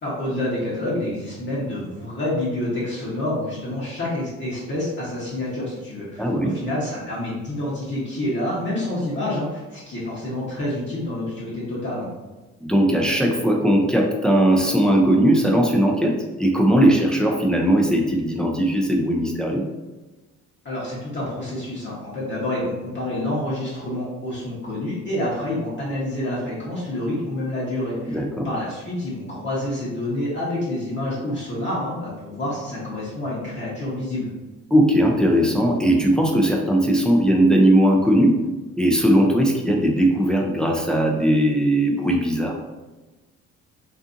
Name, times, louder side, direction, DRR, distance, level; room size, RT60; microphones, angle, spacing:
voice 1, 0.0-12.1 20.6-34.3, left 1 dB, 40° left, -8 dB, 0.9 m, -28 dB
voice 2, 6.2-6.6 12.6-19.6 28.1-28.5 34.7-38.4 38.8-42.6, right 1 dB, 5° left, 0 dB, 0.4 m, -19 dB
2.6 x 2.5 x 2.5 m, 1.2 s
cardioid pair, 90°, 30 cm